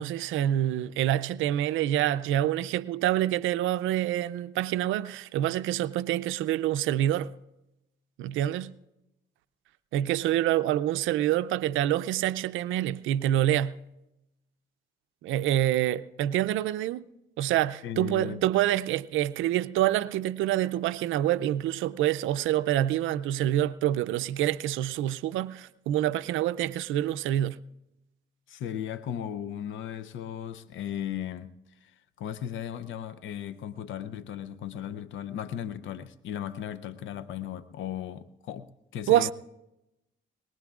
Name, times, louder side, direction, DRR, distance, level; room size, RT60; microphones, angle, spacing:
voice 1, 0.0-7.3 8.2-8.7 9.9-13.8 15.2-17.1 17.4-27.6 39.1-39.3, right 12 dB, 85° right, 0.5 m, -26 dB
voice 2, 17.8-18.4 28.5-31.5 31.8-38.7 38.9-39.3, left 10 dB, 75° left, 0.6 m, -36 dB
22.0 x 19.5 x 2.4 m
cardioid pair, 90°, 20 cm